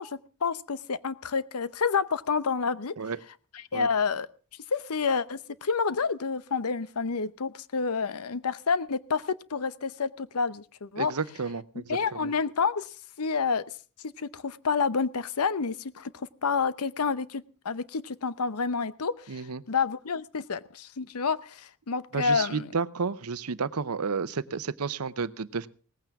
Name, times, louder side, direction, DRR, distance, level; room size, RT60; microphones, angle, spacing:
voice 1, 0.0-2.9 3.5-4.3 4.7-11.1 11.7-13.6 14.0-22.7, left 5 dB, 90° left, 16 dB, 0.8 m, -29 dB
voice 2, 11.0-12.3 19.3-19.6 22.1-25.7, right 5 dB, 90° right, 16 dB, 0.8 m, -32 dB
18.5 x 15.0 x 3.6 m, 0.38 s
head